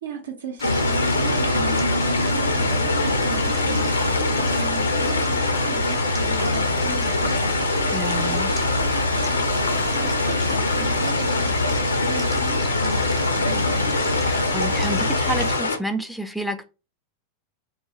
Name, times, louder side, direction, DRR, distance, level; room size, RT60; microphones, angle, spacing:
voice 1, 0.0-13.9, right 5 dB, 65° right, 0.8 m, -37 dB
sound 1, 0.6-15.8, left 3 dB, 75° left, 0.4 m, -25 dB
Stream, 0.6-15.6, right 3 dB, 20° right, 1.0 m, -41 dB
sound 2, 0.6-15.6, left 1 dB, 85° right, 0.4 m, -26 dB
voice 2, 7.9-8.5 14.2-16.7, right 1 dB, ahead, 0.4 m, -29 dB
2.5 x 2.3 x 2.9 m
figure-of-eight pair, 90°, 0 cm